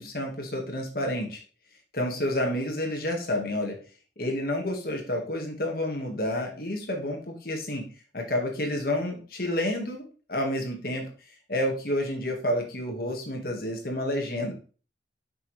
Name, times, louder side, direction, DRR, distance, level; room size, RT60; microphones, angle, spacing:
voice 1, 0.0-1.4 1.9-3.8 4.2-7.8 8.1-14.5, left 1 dB, 55° left, 2 dB, 1.8 m, -30 dB
6.9 x 5.7 x 3.3 m, 0.37 s
head